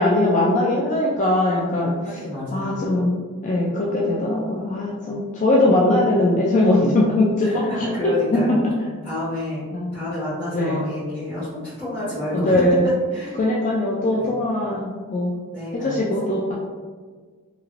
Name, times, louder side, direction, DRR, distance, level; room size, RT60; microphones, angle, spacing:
voice 1, 0.0-2.0 2.5-3.1 3.4-7.6 8.3-8.6 9.8-10.0 10.5-10.8 12.3-12.9 13.4-15.3 15.7-16.5, left 1 dB, 35° left, -4 dB, 0.3 m, -20 dB
voice 2, 1.7-2.8 5.6-5.8 7.4-8.6 9.0-13.4 14.2-14.4 15.4-16.4, left 1 dB, 5° left, -16 dB, 1.1 m, -30 dB
3.0 x 2.9 x 2.5 m, 1.5 s
head